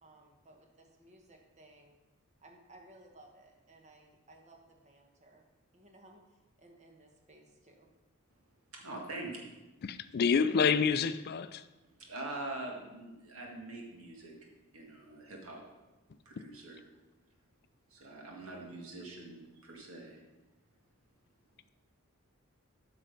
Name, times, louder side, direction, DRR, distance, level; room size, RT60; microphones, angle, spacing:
voice 1, 0.0-2.0 2.4-5.4 5.7-6.2 6.6-7.9, right 1 dB, 35° right, 2 dB, 1.3 m, -59 dB
voice 2, 8.7-9.4 11.9-14.4 14.7-15.6 16.3-16.8 17.9-20.2, right 2 dB, 85° right, 0 dB, 2.0 m, -44 dB
voice 3, 9.8-11.7 16.4-16.5, left 6 dB, 50° left, 13 dB, 0.4 m, -28 dB
8.6 x 6.2 x 5.3 m, 1.1 s
head